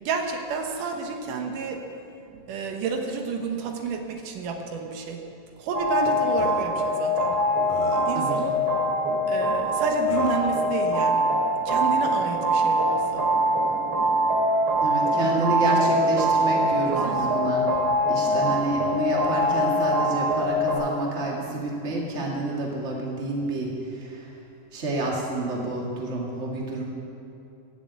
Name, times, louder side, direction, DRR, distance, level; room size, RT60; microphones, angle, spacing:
voice 1, 0.0-1.8 2.5-5.2 5.6-7.4 8.1-8.5 9.3-11.3 11.7-13.3 17.0-17.3 18.2-18.5, right 5 dB, 85° right, 3 dB, 2.7 m, -30 dB
sound 1, 5.7-20.8, equal, 45° right, 2.6 m, -23 dB
Burping eructation, 6.1-6.2 6.4-6.6 7.3-7.4 7.7-8.2 9.6-9.7 10.1-10.5, left 1 dB, 90° left, 3.1 m, -35 dB
voice 2, 8.1-8.6 14.8-17.7 18.1-23.7 24.0-24.3 24.7-26.8, right 2 dB, 25° right, -2 dB, 2.0 m, -28 dB
16.0 x 7.4 x 8.2 m, 2.8 s
omnidirectional pair, 3.7 m